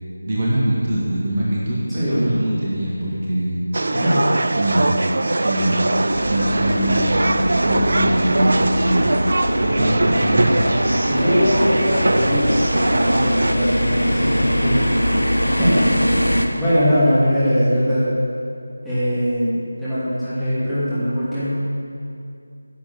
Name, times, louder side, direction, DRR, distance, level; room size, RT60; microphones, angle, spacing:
voice 1, 0.3-3.6 4.6-5.0 5.4-5.9 6.3-9.1 9.6-10.6, right 1 dB, 30° right, -6 dB, 1.8 m, -22 dB
voice 2, 1.9-2.3 3.9-4.3 11.1-12.6 13.0-15.0 15.6-16.3 16.5-18.1 18.8-21.6, equal, ahead, -18 dB, 2.6 m, -21 dB
sound 1, 3.7-13.5, right 2 dB, 55° right, 0.5 m, -21 dB
sound 2, 6.1-16.5, equal, 85° left, 1.3 m, -22 dB
10.5 x 7.0 x 8.3 m, 2.5 s
figure-of-eight pair, 165°, 0 cm